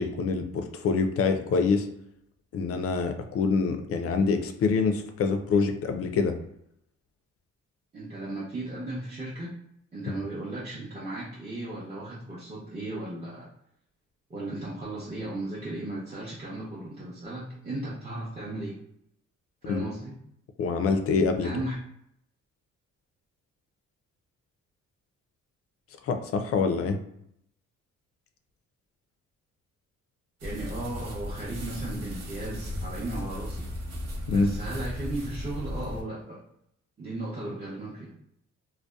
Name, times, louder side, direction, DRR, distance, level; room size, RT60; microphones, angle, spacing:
voice 1, 0.0-1.9 2.5-6.3 19.7-19.8 20.6-21.5 26.0-27.0 34.3-34.5, left 4 dB, 50° left, 7 dB, 0.4 m, -25 dB
voice 2, 7.9-9.6 9.9-13.5 14.3-18.8 19.6-20.2 21.4-21.8 30.4-33.7 34.3-36.4 37.0-38.1, right 2 dB, 25° right, -7 dB, 0.7 m, -36 dB
sound 1, 30.4-36.0, left 1 dB, 60° right, 0.8 m, -36 dB
2.6 x 2.1 x 2.3 m, 0.74 s
cardioid pair, 90°, 30 cm